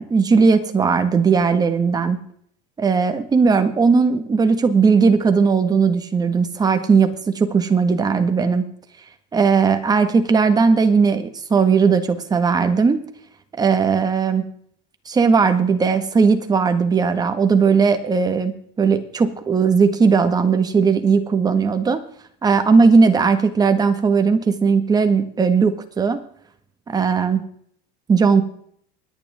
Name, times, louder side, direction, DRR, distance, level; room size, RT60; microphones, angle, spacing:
voice 1, 0.0-2.2 2.8-8.6 9.3-13.0 13.6-14.4 15.0-22.0 22.4-26.2 26.9-27.4 28.1-28.4, right 5 dB, 20° right, 8 dB, 1.7 m, -17 dB
24.0 x 10.0 x 3.7 m, 0.62 s
supercardioid pair, 135°, 20 cm